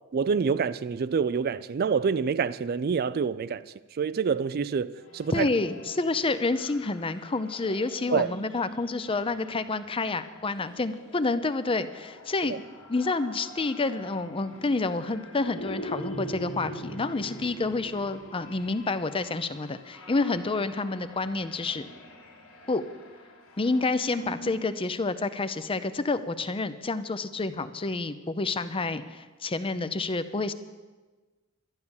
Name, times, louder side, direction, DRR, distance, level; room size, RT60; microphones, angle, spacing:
voice 1, 0.1-3.6 3.9-5.5 8.1-8.3 12.5-12.6, right 6 dB, 45° right, 0.4 m, -27 dB
sound 1, 5.0-24.8, equal, 80° left, 1.8 m, -44 dB
voice 2, 5.3-12.6 12.9-21.9 22.7-22.8 23.6-30.5, left 3 dB, 25° left, 0.6 m, -29 dB
11.5 x 11.0 x 7.1 m
head